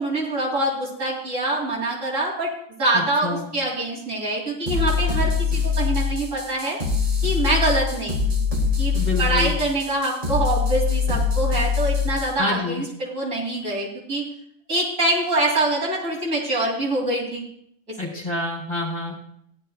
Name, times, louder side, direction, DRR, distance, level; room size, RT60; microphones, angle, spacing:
voice 1, 0.0-2.5 2.8-6.8 7.2-8.5 8.8-14.3 14.7-17.4, right 2 dB, 70° right, -5 dB, 3.4 m, -24 dB
voice 2, 2.9-3.5 8.9-9.6 12.4-12.8 18.0-19.2, left 2 dB, 20° left, -3 dB, 3.6 m, -28 dB
sound 1, 4.7-12.4, left 5 dB, 35° right, 2.0 m, -23 dB
15.5 x 11.0 x 2.3 m, 0.69 s
omnidirectional pair, 1.4 m